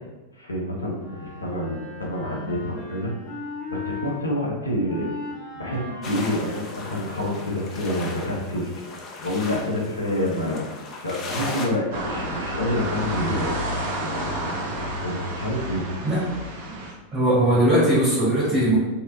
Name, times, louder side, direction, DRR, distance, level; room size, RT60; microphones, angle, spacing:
voice 1, 0.3-3.1 3.7-5.2 5.5-8.7 9.2-13.6 14.8-15.9, left 1 dB, 80° left, -2 dB, 0.7 m, -28 dB
Wind instrument woodwind instrument, 0.9-4.2 4.8-7.6, left 2 dB, 45° left, 1.4 m, -37 dB
sound 1, 6.0-11.7, left 2 dB, 30° left, 0.5 m, -36 dB
sound 2, 11.9-16.9, right 1 dB, 50° right, 0.7 m, -30 dB
voice 2, 17.1-18.8, right 1 dB, 25° right, -10 dB, 1.3 m, -19 dB
3.1 x 2.9 x 2.5 m, 1.1 s
figure-of-eight pair, 90°, 0 cm